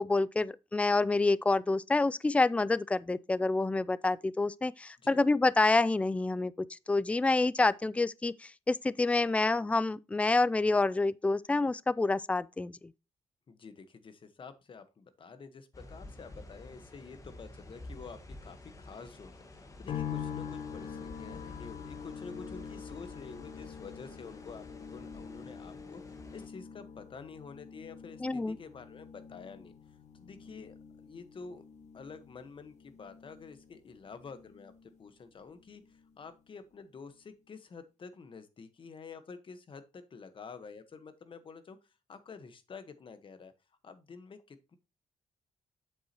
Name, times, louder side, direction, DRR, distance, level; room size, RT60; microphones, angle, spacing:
voice 1, 0.0-8.3 8.7-12.8 28.2-28.6, left 3 dB, 10° left, 0.3 m, -28 dB
voice 2, 13.5-24.6 24.9-29.7 30.1-30.8 31.0-31.6 31.9-41.8 42.1-43.5 43.8-44.8, left 5 dB, 45° left, 1.2 m, -49 dB
sound 1, 15.7-26.5, left 2 dB, 30° left, 1.5 m, -50 dB
sound 2, 19.9-35.1 35.4-36.2, left 7 dB, 75° left, 1.2 m, -45 dB
8.5 x 7.2 x 2.9 m
cardioid pair, 100°, 12 cm